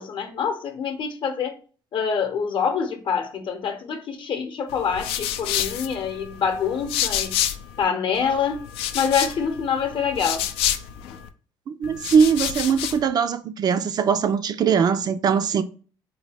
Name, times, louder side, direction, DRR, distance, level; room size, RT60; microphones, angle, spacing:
voice 1, 0.0-1.6 1.9-7.3 7.8-8.7 8.9-10.5, left 6 dB, 55° left, 0.8 m, -26 dB
sound 1, 4.7-7.8 8.1-11.3 11.8-13.1, left 10 dB, 80° left, 0.4 m, -29 dB
voice 2, 11.7-15.6, right 6 dB, 45° right, 0.4 m, -21 dB
4.1 x 2.2 x 3.4 m
supercardioid pair, 85°, 10 cm